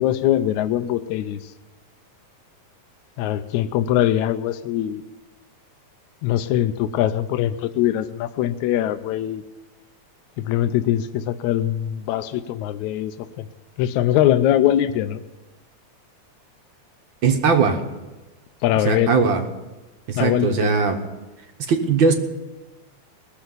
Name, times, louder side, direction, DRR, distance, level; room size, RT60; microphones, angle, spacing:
voice 1, 0.0-1.4 3.2-5.0 6.2-9.4 10.4-13.5 13.8-15.2 18.6-19.1 20.2-20.7, left 12 dB, 80° left, 10 dB, 2.0 m, -22 dB
voice 2, 17.2-17.8 18.8-19.4 20.1-21.0 21.7-22.1, right 5 dB, 55° right, 5 dB, 1.5 m, -19 dB
20.5 x 7.1 x 9.3 m, 1.1 s
omnidirectional pair, 3.3 m